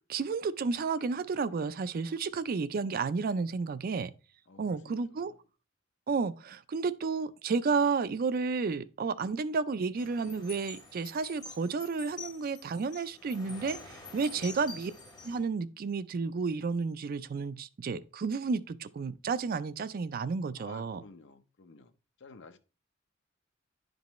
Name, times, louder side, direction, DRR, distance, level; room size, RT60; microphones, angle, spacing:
voice 1, 0.1-4.1 4.6-5.3 6.1-14.9 15.2-21.0, right 4 dB, 45° right, 0.4 m, -32 dB
voice 2, 4.5-5.4 14.3-14.7 20.5-21.9 22.2-22.6, left 3 dB, 65° left, 0.7 m, -53 dB
sound 1, 10.0-15.4, left 3 dB, 20° left, 1.7 m, -47 dB
10.0 x 5.3 x 3.0 m
head